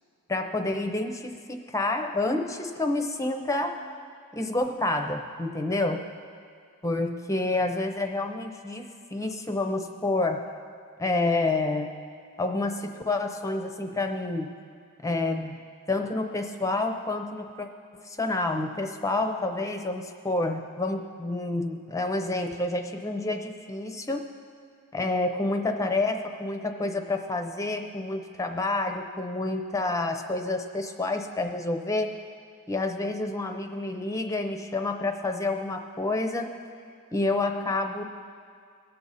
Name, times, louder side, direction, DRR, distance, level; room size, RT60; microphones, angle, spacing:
voice 1, 0.3-3.8 4.3-6.1 6.8-10.5 11.0-12.0 12.4-14.5 15.0-15.6 15.9-17.7 17.9-24.3 24.9-32.2 32.7-36.6 37.1-38.0, left 2 dB, 15° left, 5 dB, 0.6 m, -29 dB
20.0 x 7.5 x 4.1 m, 2.3 s
head